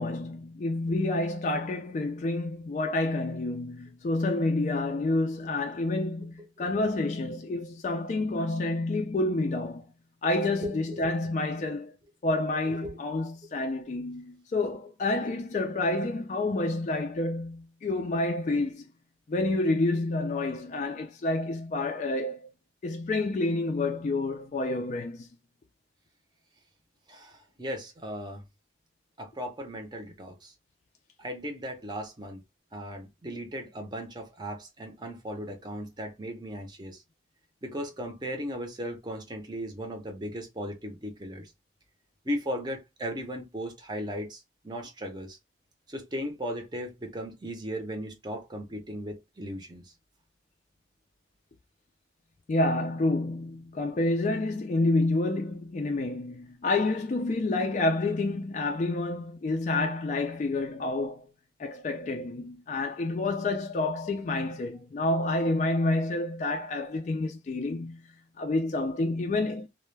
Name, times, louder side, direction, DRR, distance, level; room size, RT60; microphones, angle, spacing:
voice 1, 0.0-9.8 10.2-11.9 12.2-18.9 19.3-22.4 22.8-25.3 52.5-61.2 61.6-68.0 68.4-69.7, left 2 dB, 40° left, 0.3 m, -29 dB
voice 2, 10.6-11.1 12.7-13.0 27.1-28.4 29.2-30.5 31.2-32.4 32.7-37.0 37.6-41.5 42.2-45.4 45.9-49.9, equal, 25° right, 0.6 m, -37 dB
2.2 x 2.1 x 3.1 m
head